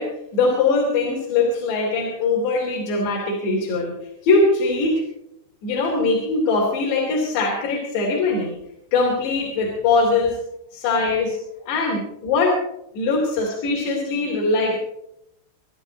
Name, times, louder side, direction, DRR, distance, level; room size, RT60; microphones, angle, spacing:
voice 1, 0.0-3.9 4.2-5.0 5.6-8.5 8.9-10.4 10.7-11.4 11.7-12.6 12.9-14.8, left 3 dB, 65° left, -3 dB, 5.1 m, -21 dB
26.5 x 11.5 x 4.1 m, 0.79 s
omnidirectional pair, 5.6 m